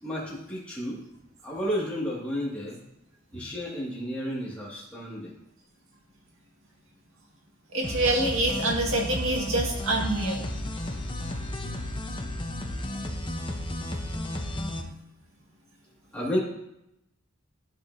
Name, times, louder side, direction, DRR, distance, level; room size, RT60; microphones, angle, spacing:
voice 1, 0.0-1.0 1.4-2.8 3.3-5.3 10.9-11.0 16.1-16.4, equal, 5° left, -7 dB, 2.2 m, -32 dB
voice 2, 7.7-10.4, right 1 dB, 85° right, -1 dB, 1.9 m, -26 dB
sound 1, 7.8-14.8, left 1 dB, 25° left, 0.9 m, -33 dB
12.0 x 6.7 x 2.8 m, 0.82 s
head